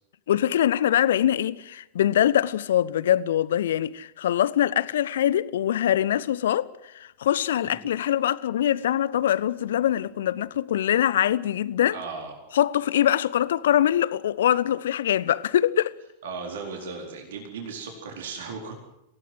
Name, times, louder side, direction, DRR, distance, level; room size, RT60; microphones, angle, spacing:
voice 1, 0.3-6.7 6.9-12.0 12.5-15.9, left 11 dB, 60° left, 0.9 m, -23 dB
voice 2, 11.9-12.3 16.2-18.7, right 4 dB, 60° right, 4.3 m, -36 dB
27.5 x 17.5 x 7.8 m
figure-of-eight pair, 90°, 0 cm